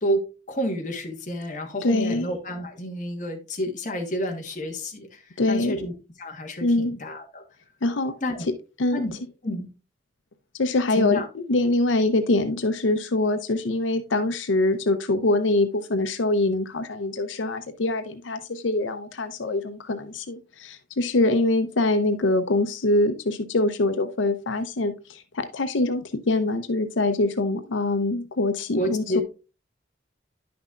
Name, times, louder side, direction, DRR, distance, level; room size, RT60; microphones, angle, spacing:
voice 1, 0.0-5.2 5.5-7.4 8.2-8.5 8.9-9.7 10.9-11.3 28.8-29.2, equal, 40° left, 1.3 m, -30 dB
voice 2, 1.8-2.3 5.4-5.7 6.6-7.0 7.8-8.2 8.8-9.0 10.6-29.2, left 2 dB, 90° left, 0.6 m, -24 dB
10.0 x 6.0 x 2.4 m
head